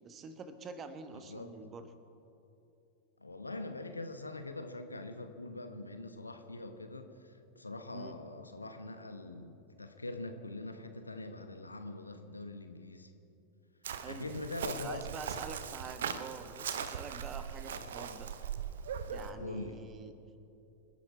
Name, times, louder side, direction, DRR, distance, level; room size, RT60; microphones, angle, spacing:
voice 1, 0.0-1.9 7.9-8.1 13.9-14.3 14.8-18.3 19.1-20.1, right 5 dB, 25° right, 10 dB, 1.2 m, -46 dB
voice 2, 1.1-1.5 3.2-13.1 14.1-15.1 19.4-19.8, left 2 dB, 80° left, 7 dB, 1.1 m, -43 dB
Chirp tweet, 13.8-19.3, right 7 dB, 60° right, 0.9 m, -40 dB
26.5 x 11.0 x 4.6 m, 2.8 s
figure-of-eight pair, 90°, 0 cm